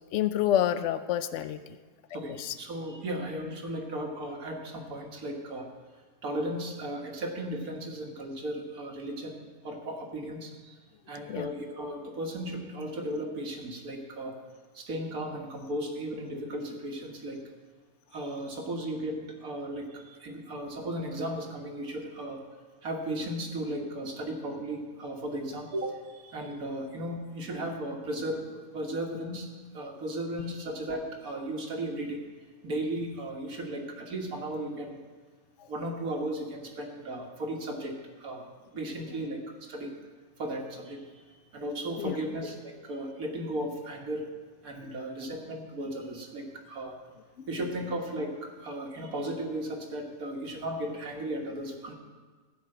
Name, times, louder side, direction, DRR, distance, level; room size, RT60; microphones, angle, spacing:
voice 1, 0.1-1.6 2.1-2.5 11.3-11.5 42.0-42.1, left 11 dB, 65° left, 12 dB, 0.9 m, -28 dB
voice 2, 2.1-5.7 6.2-10.8 11.1-14.3 14.7-17.4 18.1-22.4 22.8-29.5 29.7-32.2 32.6-35.0 35.7-38.5 38.7-39.9 40.4-44.3 44.6-46.9 47.5-51.9, right 1 dB, 85° right, 1 dB, 1.9 m, -35 dB
14.5 x 5.0 x 7.7 m, 1.4 s
omnidirectional pair, 1.5 m